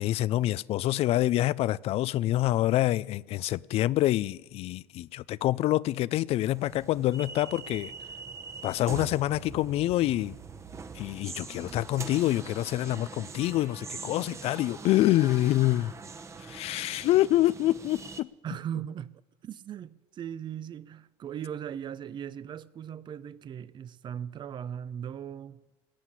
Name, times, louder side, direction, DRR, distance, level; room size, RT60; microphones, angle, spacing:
voice 1, 0.0-7.9 8.6-10.3 10.9-15.9 16.5-18.3, left 15 dB, 60° left, 0.4 m, -26 dB
sound 1, 6.4-18.2, right 4 dB, 25° right, 1.0 m, -43 dB
voice 2, 18.4-25.6, right 9 dB, 40° right, 0.6 m, -38 dB
18.5 x 7.4 x 9.9 m
cardioid pair, 110°, 12 cm